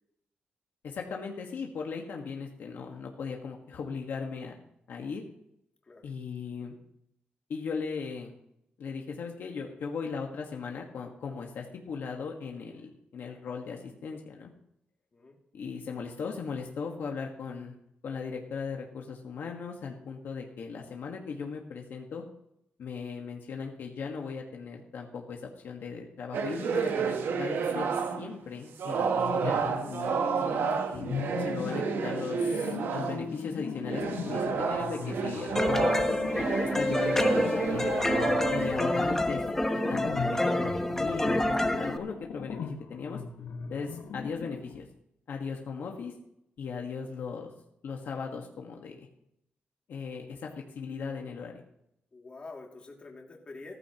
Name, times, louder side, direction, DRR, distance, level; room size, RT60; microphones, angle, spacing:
voice 1, 0.8-4.6 4.9-5.2 6.0-6.8 7.5-8.3 8.8-14.5 15.5-17.7 18.0-22.2 22.8-29.6 30.4-31.1 31.4-36.2 36.8-39.4 39.9-43.2 43.7-44.9 45.3-46.1 46.6-47.5 47.8-49.1 49.9-51.6, left 5 dB, 65° left, 1 dB, 1.5 m, -38 dB
sound 1, 26.3-28.4 28.8-33.4 33.8-39.2, right 6 dB, 75° right, 1.1 m, -31 dB
sound 2, 29.2-30.5 30.9-44.8, left 6 dB, 85° left, 1.4 m, -39 dB
sound 3, 35.5-42.0, left 1 dB, 10° left, 1.0 m, -27 dB
voice 2, 52.1-53.7, left 3 dB, 30° left, -1 dB, 2.5 m, -46 dB
15.5 x 13.5 x 3.0 m, 0.78 s
wide cardioid pair, 150°, 4 cm